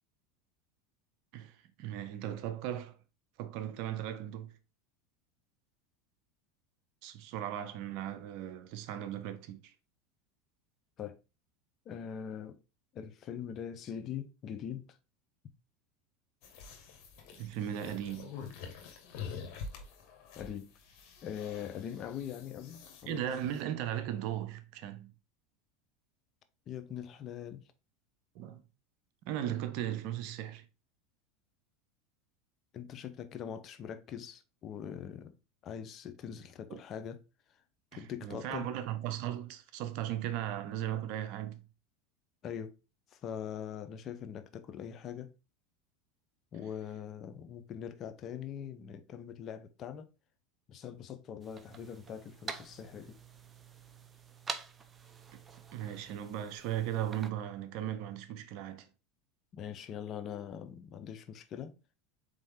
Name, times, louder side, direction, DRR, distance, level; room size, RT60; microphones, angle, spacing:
voice 1, 1.3-3.0 3.4-4.5 7.0-9.7 17.3-18.3 23.1-25.1 28.3-28.6 29.3-30.6 36.7-36.8 37.9-41.6 55.7-58.9, right 11 dB, 60° right, 0.7 m, -37 dB
voice 2, 11.9-12.6 12.9-15.0 20.3-20.7 21.2-23.5 26.7-27.7 32.7-35.4 35.6-37.2 37.9-38.7 42.4-42.7 43.1-45.3 46.5-50.1 50.7-53.2 59.5-61.8, left 8 dB, 40° left, 0.6 m, -42 dB
sound 1, 16.4-23.6, left 6 dB, 55° left, 1.2 m, -47 dB
sound 2, 51.4-57.3, right 5 dB, 20° right, 0.6 m, -46 dB
4.2 x 3.3 x 3.6 m
supercardioid pair, 110°, 0 cm